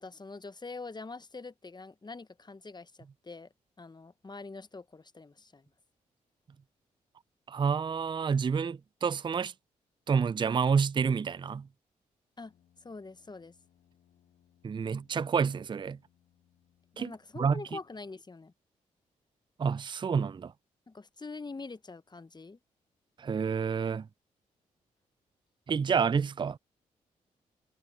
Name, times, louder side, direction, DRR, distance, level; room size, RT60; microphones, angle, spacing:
voice 1, 0.0-3.5 3.8-5.7 12.4-13.5 16.9-18.5 20.9-22.6, left 3 dB, 25° left, 1.1 m, -44 dB
voice 2, 7.5-9.5 10.1-11.7 14.6-16.0 17.0-17.6 19.6-20.5 23.2-24.1 25.7-26.6, right 6 dB, 30° right, 0.4 m, -29 dB
Brass instrument, 12.4-18.2, left 10 dB, 70° left, 7.9 m, -69 dB
hypercardioid pair, 40°, 16 cm